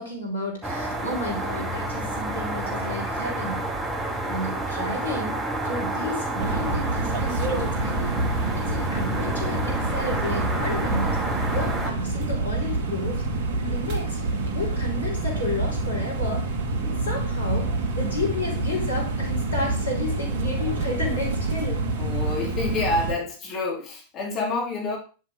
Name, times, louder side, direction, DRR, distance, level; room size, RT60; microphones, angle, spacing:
voice 1, 0.0-3.6 4.2-11.2 11.5-13.2 13.6-14.2 14.5-16.5 16.8-21.8, left 2 dB, 75° left, -1 dB, 4.4 m, -32 dB
sound 1, 0.6-11.9, right 1 dB, 10° right, 2.0 m, -29 dB
sound 2, 6.4-23.1, right 2 dB, 50° right, 2.2 m, -27 dB
voice 2, 22.0-25.0, left 3 dB, 35° left, 0 dB, 3.4 m, -28 dB
10.5 x 7.5 x 5.1 m, 0.35 s
figure-of-eight pair, 90°, 0 cm